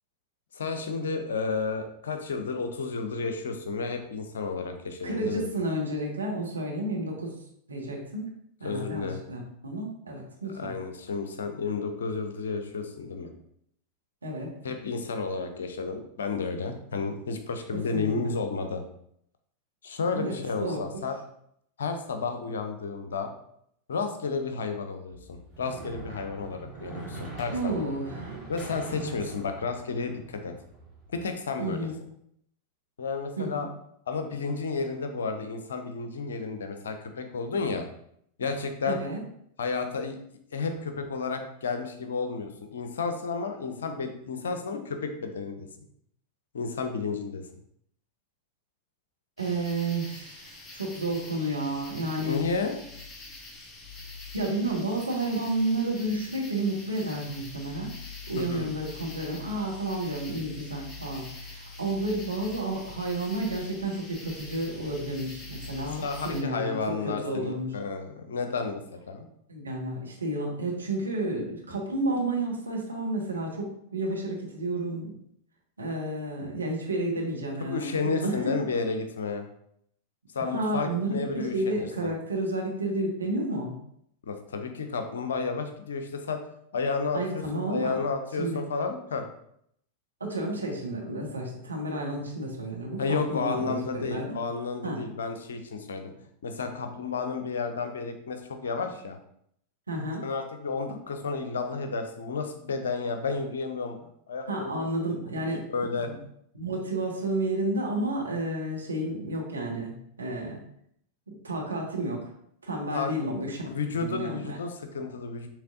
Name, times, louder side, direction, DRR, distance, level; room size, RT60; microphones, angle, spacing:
voice 1, 0.5-5.5 8.6-9.2 10.5-13.3 14.6-18.8 19.8-21.2 21.8-23.3 23.9-27.7 28.5-30.5 31.1-31.8 33.0-33.7 34.1-37.9 38.4-39.0 39.6-40.2 40.5-45.7 46.5-47.4 52.2-52.8 58.4-58.7 65.8-69.3 77.7-79.4 80.3-82.1 84.2-86.4 86.7-89.2 93.0-96.1 96.4-99.2 100.2-104.0 104.3-104.8 105.7-106.1 112.9-113.1 113.7-115.5, left 4 dB, 65° left, 7 dB, 0.6 m, -32 dB
voice 2, 5.0-7.3 7.7-8.3 8.6-10.7 14.2-14.5 17.9-18.3 20.1-20.3 20.6-20.8 27.5-28.3 28.9-29.1 31.6-32.0 33.4-33.7 38.8-39.2 49.4-52.4 54.3-57.9 58.3-66.8 67.0-67.7 69.5-75.2 75.8-78.5 80.5-83.7 87.1-88.0 88.4-88.6 90.2-94.3 94.8-95.0 99.9-100.2 104.5-106.2 106.5-110.6 111.3-112.3 112.6-114.6, right 1 dB, 75° right, -1 dB, 1.1 m, -31 dB
sound 1, 25.1-31.2, right 3 dB, 15° right, 1.8 m, -43 dB
sound 2, 49.4-66.4, left 3 dB, 20° left, 0.9 m, -44 dB
6.5 x 3.2 x 2.5 m, 0.70 s
figure-of-eight pair, 90°, 0 cm